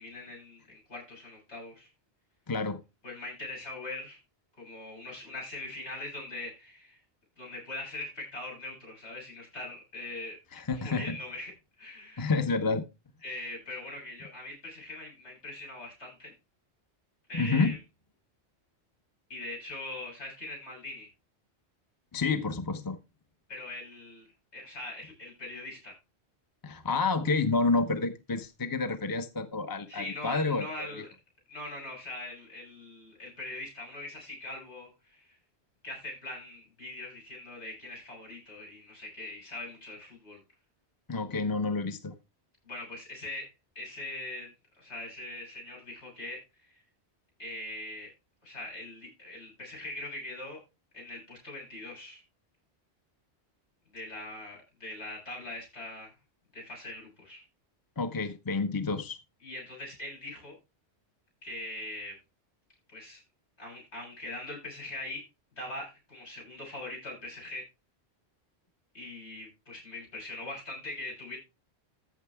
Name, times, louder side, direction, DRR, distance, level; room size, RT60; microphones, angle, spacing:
voice 1, 0.0-1.9 3.0-4.2 4.6-7.0 7.4-11.5 11.8-12.3 13.2-16.3 17.3-17.8 19.3-21.1 23.5-24.3 24.5-26.0 29.9-31.1 31.5-35.4 35.8-40.4 42.6-44.5 44.8-46.8 47.4-48.1 48.4-50.6 50.9-52.2 53.9-56.1 56.5-57.4 59.4-60.6 61.4-62.1 62.9-63.2 63.6-65.3 65.6-67.7 68.9-71.4, left 2 dB, 80° left, 7.9 m, -41 dB
voice 2, 2.5-2.8 10.5-11.2 12.2-12.8 17.3-17.8 22.1-23.0 26.6-31.0 41.1-42.1 58.0-59.2, left 3 dB, 20° left, 0.9 m, -29 dB
14.5 x 7.0 x 3.5 m
omnidirectional pair, 1.1 m